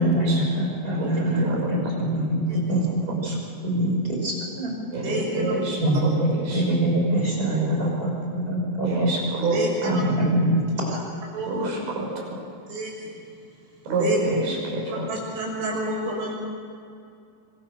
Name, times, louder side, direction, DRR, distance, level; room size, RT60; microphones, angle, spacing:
voice 1, 0.0-3.4 3.6-4.7 5.8-9.1 9.8-10.6, right 1 dB, 20° right, -1 dB, 5.8 m, -24 dB
voice 2, 1.0-1.6 3.3-3.4 4.9-5.8 6.5-6.6 8.8-10.0 11.5-12.4 13.9-15.1, right 2 dB, 55° right, -1 dB, 7.8 m, -27 dB
voice 3, 5.0-5.6 5.9-6.1 9.4-10.0 10.9-11.0 11.3-11.7 12.7-13.2 13.8-14.2 15.1-16.3, right 1 dB, 80° right, -2 dB, 8.9 m, -30 dB
26.5 x 25.0 x 6.7 m, 2.4 s
omnidirectional pair, 5.3 m